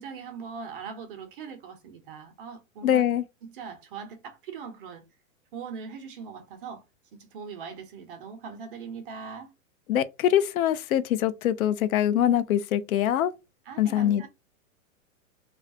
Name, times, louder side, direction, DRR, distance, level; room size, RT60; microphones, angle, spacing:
voice 1, 0.0-3.1 3.4-5.0 5.5-6.8 7.1-9.5 13.6-14.3, right 6 dB, 40° right, 0.6 m, -40 dB
voice 2, 2.8-3.2 9.9-13.3 13.8-14.3, left 11 dB, 90° left, 0.5 m, -23 dB
2.3 x 2.2 x 2.5 m
hypercardioid pair, 155°, 41 cm